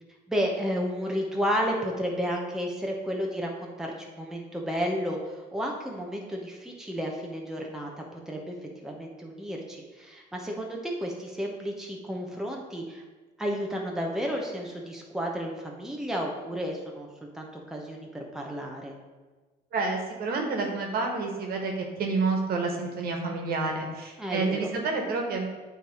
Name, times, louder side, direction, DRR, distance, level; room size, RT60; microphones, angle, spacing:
voice 1, 0.3-8.6 8.8-13.0 13.4-17.1 17.3-18.9 24.2-24.7, equal, 5° right, 0 dB, 1.0 m, -32 dB
voice 2, 19.7-21.7 22.0-25.5, right 3 dB, 65° right, 2 dB, 1.5 m, -29 dB
8.9 x 3.4 x 4.8 m, 1.3 s
cardioid pair, 110°, 17 cm